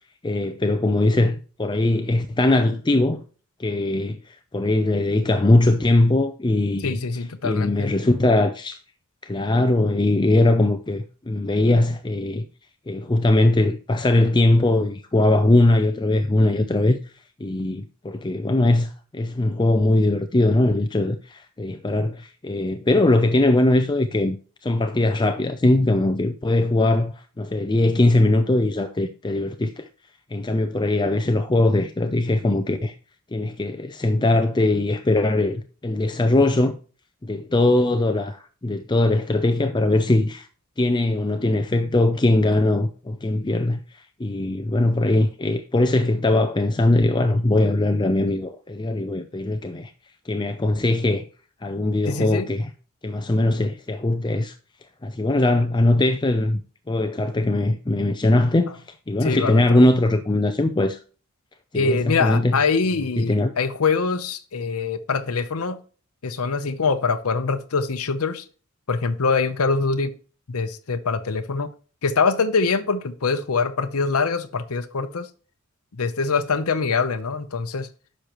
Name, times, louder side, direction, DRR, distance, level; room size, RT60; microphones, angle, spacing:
voice 1, 0.2-3.2 3.6-8.8 9.2-12.5 12.9-17.0 17.4-24.4 24.6-29.9 30.3-32.9 33.3-36.7 37.2-40.5 40.8-49.9 50.3-51.2 51.6-52.7 53.0-54.5 55.0-56.6 56.9-61.0 61.7-62.6 63.2-63.5, left 2 dB, 20° left, 0.5 m, -21 dB
voice 2, 6.8-7.9 52.1-52.5 59.2-59.8 61.7-65.8 66.2-68.4 68.9-70.1 70.5-71.7 72.0-75.3 76.0-77.9, left 4 dB, 80° left, 0.7 m, -24 dB
10.0 x 6.4 x 3.0 m
head